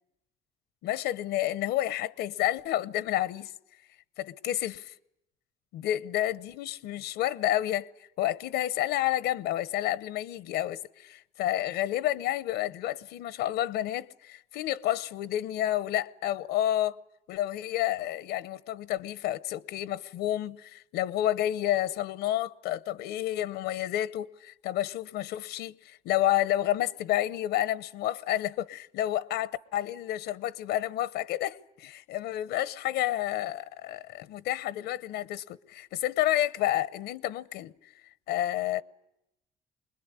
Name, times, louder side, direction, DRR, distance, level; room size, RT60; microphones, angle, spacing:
voice 1, 0.8-3.5 4.2-4.9 5.7-7.9 8.2-17.0 17.3-37.7 38.3-38.8, left 13 dB, 85° left, 0.9 m, -30 dB
25.5 x 21.0 x 9.8 m
cardioid pair, 110°, 17 cm